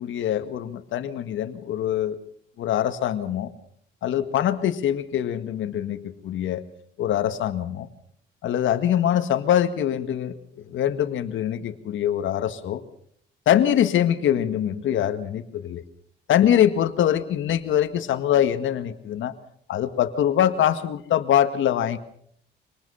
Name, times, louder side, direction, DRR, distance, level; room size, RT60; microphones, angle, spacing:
voice 1, 0.0-2.2 2.6-3.5 4.0-6.7 7.0-7.9 8.4-12.8 13.4-15.8 16.3-19.3 19.7-22.0, left 10 dB, 75° left, 10 dB, 1.8 m, -23 dB
25.5 x 19.5 x 5.7 m, 0.64 s
cardioid pair, 90°, 20 cm